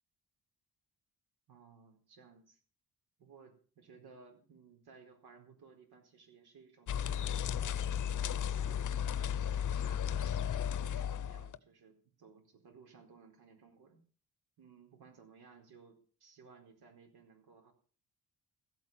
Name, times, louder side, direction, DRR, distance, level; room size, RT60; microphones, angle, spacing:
voice 1, 1.5-2.6 3.2-9.0 9.7-10.4 10.7-14.0 14.6-17.7, right 5 dB, 85° right, 3 dB, 4.4 m, -59 dB
sound 1, 6.9-11.6, left 9 dB, 55° left, 0.7 m, -34 dB
15.5 x 8.4 x 7.3 m, 0.41 s
wide cardioid pair, 160°, 37 cm